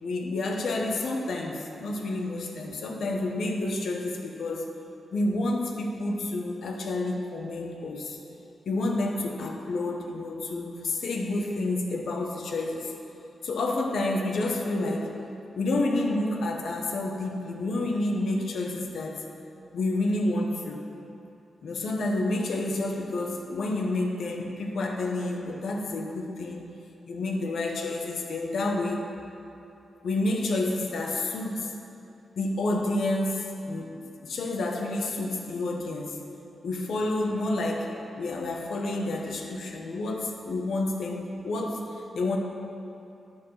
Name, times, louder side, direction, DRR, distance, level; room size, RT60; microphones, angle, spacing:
voice 1, 0.0-4.7 5.1-8.2 8.7-12.9 13.4-15.1 15.6-19.2 19.7-20.8 21.6-26.7 27.0-29.1 30.0-31.7 32.4-36.2 36.6-42.4, left 2 dB, 75° left, 2 dB, 0.8 m, -29 dB
9.8 x 4.7 x 6.2 m, 2.7 s
wide cardioid pair, 160°, 0 cm